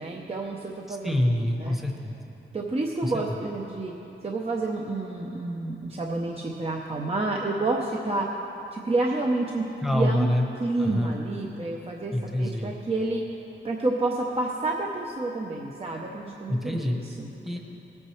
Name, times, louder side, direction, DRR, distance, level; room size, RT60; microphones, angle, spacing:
voice 1, 0.0-1.1 1.6-1.8 2.5-3.9 4.2-8.3 8.7-9.6 9.9-10.3 10.5-13.2 13.6-17.3, right 2 dB, 30° right, -1 dB, 0.7 m, -29 dB
voice 2, 0.9-2.2 3.0-3.1 9.8-10.4 10.8-11.2 12.1-12.8 16.5-17.0 17.4-17.6, left 1 dB, ahead, 2 dB, 1.0 m, -26 dB
19.5 x 8.7 x 3.2 m, 3.0 s
wide cardioid pair, 145°, 20 cm